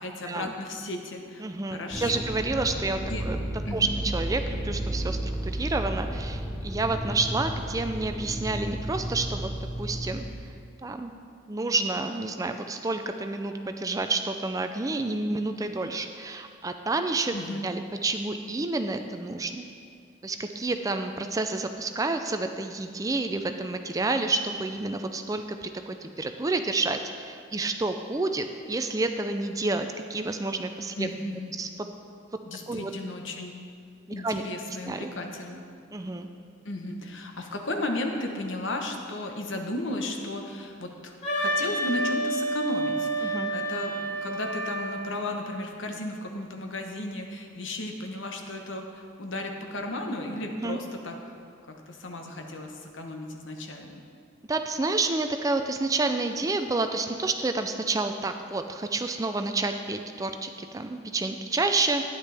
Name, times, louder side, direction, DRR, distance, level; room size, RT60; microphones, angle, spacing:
voice 1, 0.0-1.4 1.7-2.1 3.1-3.2 3.6-3.9 17.3-17.6 31.0-31.6 32.4-33.6 34.1-35.6 36.6-51.2 51.7-54.0, left 1 dB, 80° left, 3 dB, 1.1 m, -34 dB
voice 2, 1.4-3.4 3.7-3.9 4.1-10.2 10.8-11.1 11.5-17.4 17.6-19.7 20.2-31.1 31.5-31.7 32.7-32.9 34.2-34.4 34.8-35.1 35.9-36.3 43.2-43.5 50.6-50.8 54.5-62.0, right 3 dB, 20° right, 7 dB, 0.4 m, -29 dB
sound 1, 1.9-10.3, right 1 dB, 5° left, 1.0 m, -33 dB
Wind instrument woodwind instrument, 41.2-45.1, right 1 dB, 35° left, 2.4 m, -29 dB
11.0 x 9.9 x 3.4 m, 2.3 s
head